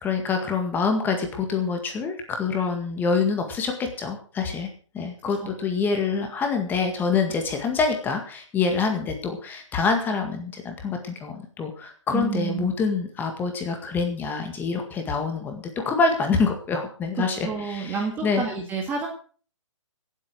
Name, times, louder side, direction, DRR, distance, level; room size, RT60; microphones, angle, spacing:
voice 1, 0.0-4.7 4.9-18.4, left 5 dB, 10° left, 4 dB, 1.9 m, -26 dB
voice 2, 12.1-12.8 17.4-19.1, right 5 dB, 10° right, 1 dB, 1.7 m, -29 dB
17.5 x 8.4 x 6.3 m, 0.42 s
hypercardioid pair, 150°, 16 cm